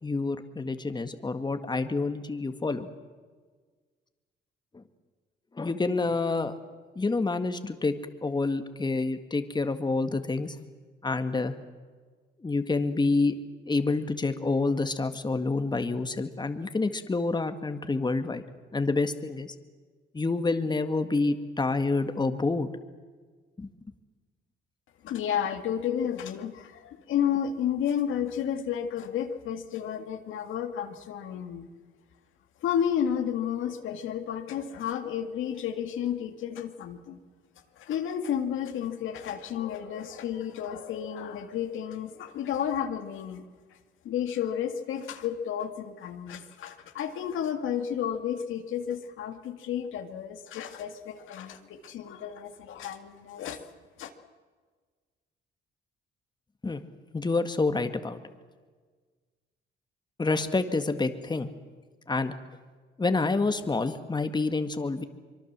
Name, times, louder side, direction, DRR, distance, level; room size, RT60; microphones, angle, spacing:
voice 1, 0.0-2.9 4.7-4.8 5.6-6.5 7.0-7.9 8.2-10.6 11.0-11.5 12.4-13.4 13.7-18.4 18.7-19.5 20.1-22.7 23.6-23.7 56.6-56.8 57.1-58.2 60.2-61.5 62.1-62.3 63.0-65.0, left 3 dB, 20° left, 8 dB, 1.8 m, -28 dB
voice 2, 25.0-31.7 32.6-37.2 37.8-43.4 44.0-53.6 54.0-54.1, left 9 dB, 80° left, 7 dB, 2.0 m, -32 dB
25.0 x 23.0 x 7.4 m, 1.5 s
cardioid pair, 90°, 20 cm